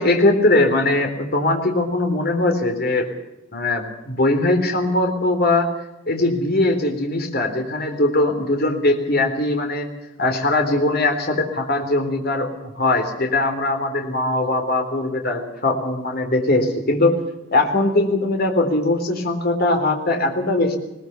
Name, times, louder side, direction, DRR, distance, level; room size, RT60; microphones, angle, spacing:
voice 1, 0.0-3.1 3.5-5.7 6.1-9.9 10.2-12.5 12.8-17.2 17.5-20.8, left 2 dB, 55° left, 4 dB, 3.7 m, -20 dB
21.0 x 19.5 x 6.9 m, 1.0 s
head